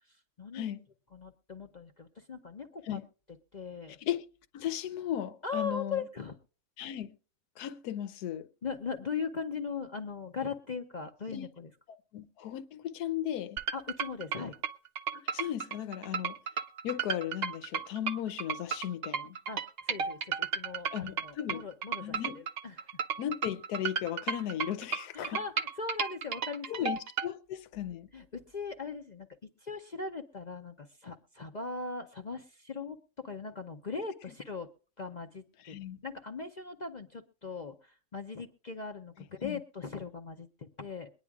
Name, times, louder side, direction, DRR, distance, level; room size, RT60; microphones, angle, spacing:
voice 1, 0.1-0.6 1.1-3.0 3.5-4.0 5.4-6.4 8.6-11.7 13.7-14.6 19.5-22.9 24.3-24.4 25.1-26.7 27.8-27.9 28.1-29.3 29.6-34.7 35.0-35.8 36.0-41.1, left 5 dB, 50° left, 0.5 m, -39 dB
voice 2, 4.5-6.0 6.8-7.1 7.6-8.5 11.3-11.5 12.1-13.6 15.1-16.4 16.8-19.4 20.9-21.6 22.0-22.4 23.2-25.4 26.7-28.1 35.6-36.0 39.4-39.6, left 11 dB, 75° left, 1.2 m, -36 dB
sound 1, 13.6-27.3, right 7 dB, 65° right, 0.6 m, -34 dB
22.5 x 9.7 x 2.4 m
omnidirectional pair, 1.7 m